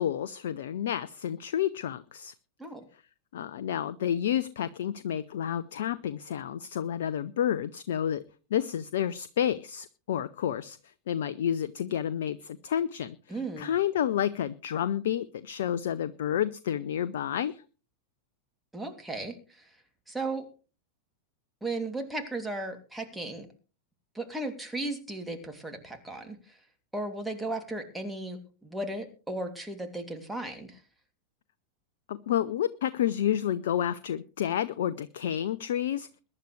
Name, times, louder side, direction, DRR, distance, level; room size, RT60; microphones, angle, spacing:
voice 1, 0.0-2.3 3.3-8.2 8.5-10.8 11.1-17.6 32.1-36.1, left 10 dB, 60° left, 16 dB, 0.6 m, -30 dB
voice 2, 13.3-13.7 18.7-19.7 20.1-20.5 21.6-23.5 24.1-26.6 26.9-30.8, right 2 dB, 5° right, 4 dB, 2.8 m, -36 dB
22.0 x 11.0 x 3.3 m, 0.36 s
figure-of-eight pair, 90°, 0 cm